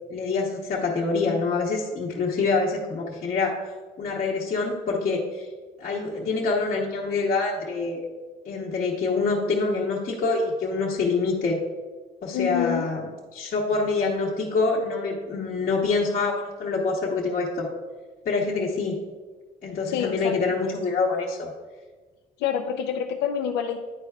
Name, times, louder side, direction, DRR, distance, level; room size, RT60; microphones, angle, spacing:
voice 1, 0.1-3.6 4.0-5.5 5.8-8.0 8.4-11.6 12.2-13.0 13.3-17.7 18.2-19.0 19.6-21.5, left 4 dB, 50° left, -5 dB, 0.9 m, -26 dB
voice 2, 12.3-12.8 19.9-20.3 22.4-23.8, left 8 dB, 85° left, 4 dB, 0.4 m, -27 dB
9.9 x 4.5 x 2.3 m, 1.3 s
cardioid pair, 110°, 17 cm